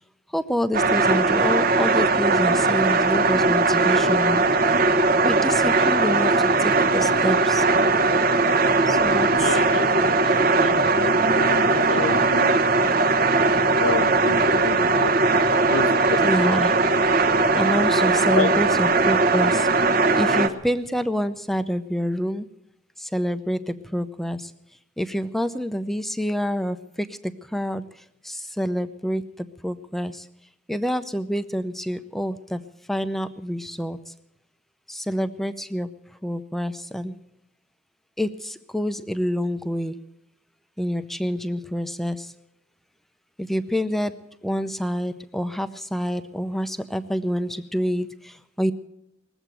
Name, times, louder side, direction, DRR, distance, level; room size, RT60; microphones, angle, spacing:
voice 1, 0.3-4.4 5.2-7.7 8.9-9.6 16.2-16.8 17.5-22.5 23.0-24.5 25.0-30.3 30.7-32.6 32.9-34.1 34.9-35.9 36.2-37.1 38.2-40.0 40.8-42.3 43.4-44.1 44.4-48.7, equal, ahead, 10 dB, 0.6 m, -27 dB
sound 1, 0.7-20.5, right 3 dB, 45° right, 1.0 m, -19 dB
voice 2, 9.2-12.6 13.8-15.1 15.7-16.5 18.3-18.6, left 4 dB, 80° left, 12 dB, 0.7 m, -30 dB
20.0 x 8.0 x 8.9 m, 0.82 s
head